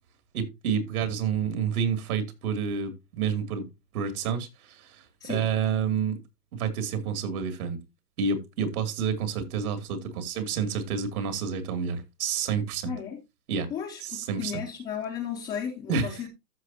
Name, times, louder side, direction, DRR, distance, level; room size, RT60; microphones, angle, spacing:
voice 1, 0.3-3.7 3.9-6.2 6.5-7.8 8.2-12.9 13.5-13.7 14.0-14.6 15.9-16.3, right 6 dB, 60° right, 2.8 m, -29 dB
voice 2, 12.9-13.2 13.7-16.3, left 8 dB, 10° left, 0.5 m, -34 dB
14.0 x 6.0 x 2.8 m
hypercardioid pair, 145°, 49 cm